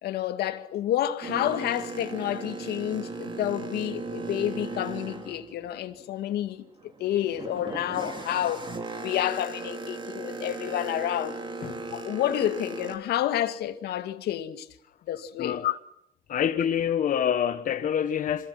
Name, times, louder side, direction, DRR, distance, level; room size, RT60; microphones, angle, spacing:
voice 1, 0.0-6.7 7.0-8.7 9.0-11.4 11.9-14.7 15.1-15.8 16.6-16.7, left 12 dB, 70° left, 2.2 m, -29 dB
Boat Water vehicle, 1.2-6.2 6.7-13.0, right 3 dB, 30° right, 4.2 m, -37 dB
voice 2, 16.3-18.5, left 9 dB, 50° left, 1.4 m, -26 dB
27.5 x 27.0 x 6.0 m
cardioid pair, 110°, 17 cm